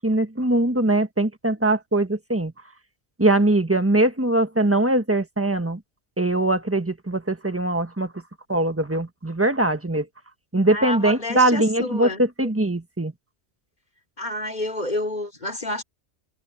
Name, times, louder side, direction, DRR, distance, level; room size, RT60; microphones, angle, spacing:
voice 1, 0.0-2.5 3.2-5.8 6.2-8.1 8.5-10.0 10.5-13.1, right 2 dB, 10° right, 1.4 m, -21 dB
voice 2, 10.7-12.5 14.2-15.8, left 1 dB, 40° left, 3.3 m, -29 dB
omnidirectional pair, 1.2 m